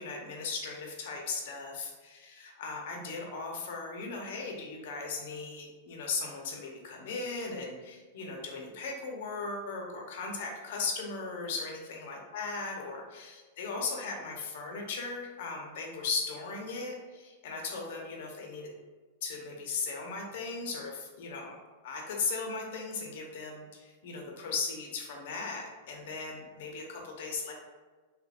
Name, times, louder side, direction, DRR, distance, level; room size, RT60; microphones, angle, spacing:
voice 1, 0.0-18.7 19.2-21.6 21.8-27.5, left 4 dB, 60° left, 0 dB, 0.8 m, -37 dB
3.0 x 2.4 x 3.4 m, 1.3 s
supercardioid pair, 160°, 0 cm